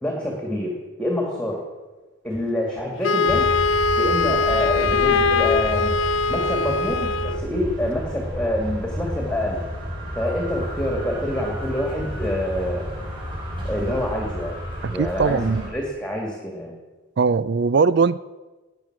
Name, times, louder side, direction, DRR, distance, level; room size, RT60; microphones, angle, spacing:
voice 1, 0.0-1.6 2.2-3.5 4.0-5.9 6.3-9.6 10.1-12.9 13.6-14.5 14.8-16.7, left 1 dB, 5° left, -1 dB, 2.3 m, -26 dB
Wind instrument woodwind instrument, 3.0-7.4, left 4 dB, 70° left, 0.5 m, -21 dB
sound 1, 3.3-15.7, equal, 25° right, 6.0 m, -31 dB
voice 2, 14.8-15.7 17.2-18.2, right 5 dB, 55° right, 17 dB, 0.4 m, -20 dB
18.0 x 10.5 x 6.1 m, 1.2 s
head